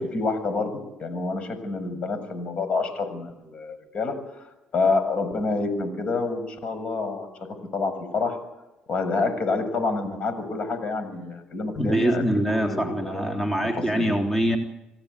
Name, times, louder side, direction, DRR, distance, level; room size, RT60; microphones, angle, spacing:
voice 1, 0.0-4.1 4.7-7.3 7.7-8.4 8.9-12.3 12.5-13.4 13.8-14.1, left 3 dB, 45° left, 10 dB, 6.9 m, -28 dB
voice 2, 11.8-14.6, right 1 dB, 10° left, 1 dB, 3.4 m, -24 dB
27.5 x 17.0 x 8.3 m, 0.98 s
cardioid pair, 90°, 3 cm